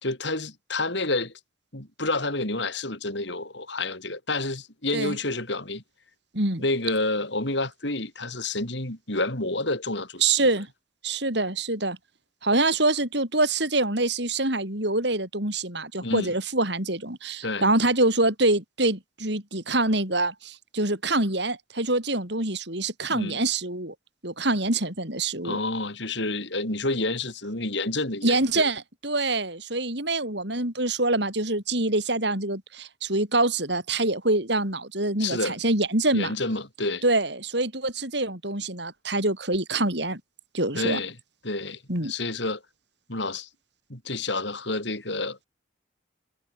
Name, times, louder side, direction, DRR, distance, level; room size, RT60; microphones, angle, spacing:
voice 1, 0.0-1.3 1.7-5.8 6.6-10.2 16.0-16.3 17.4-17.7 23.1-23.4 25.4-28.6 35.2-35.6 36.1-37.0 40.7-41.2 41.4-42.6 43.1-43.5 43.9-45.4, left 2 dB, 65° left, 4.9 m, -29 dB
voice 2, 10.2-10.7 11.0-12.0 12.4-23.9 24.2-25.6 28.2-36.3 37.0-40.2 40.5-41.0 41.9-42.1, right 2 dB, 60° right, 7.7 m, -25 dB
head